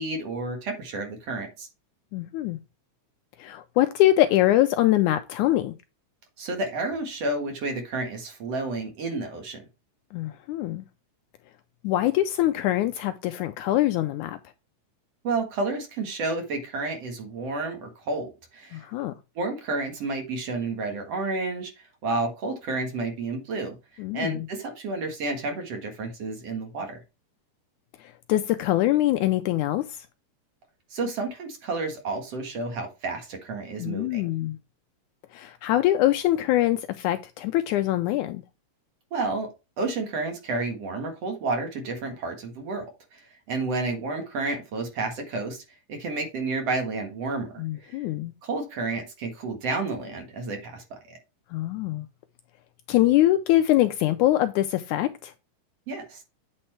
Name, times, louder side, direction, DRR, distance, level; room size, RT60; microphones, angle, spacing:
voice 1, 0.0-1.7 6.4-9.6 15.2-18.9 19.4-21.7 22.0-23.8 24.1-27.0 30.9-34.3 39.1-39.5 39.8-42.9 43.1-45.6 45.9-48.0 48.4-51.2 55.9-56.2, right 3 dB, 55° right, 2.4 m, -31 dB
voice 2, 2.1-2.6 3.4-5.7 10.1-10.8 11.8-14.4 18.7-19.1 24.0-24.5 28.3-29.8 33.8-34.6 35.3-38.4 47.6-48.3 51.5-52.1 52.9-55.3, left 14 dB, 80° left, 1.8 m, -23 dB
8.6 x 4.4 x 4.3 m
omnidirectional pair, 3.8 m